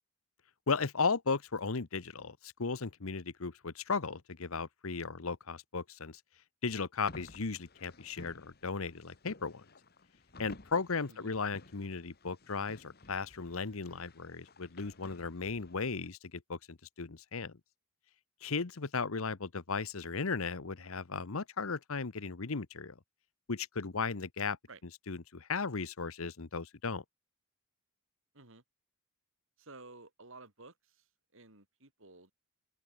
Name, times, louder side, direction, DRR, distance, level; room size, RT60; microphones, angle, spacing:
voice 1, 0.7-6.2 6.6-9.6 10.4-17.6 18.4-23.0 23.5-24.6 25.1-27.0, left 4 dB, 70° left, 1.0 m, -36 dB
sound 1, 7.0-16.1, left 2 dB, 45° left, 2.1 m, -55 dB
voice 2, 29.6-32.3, right 3 dB, 60° right, 4.2 m, -54 dB
open air
head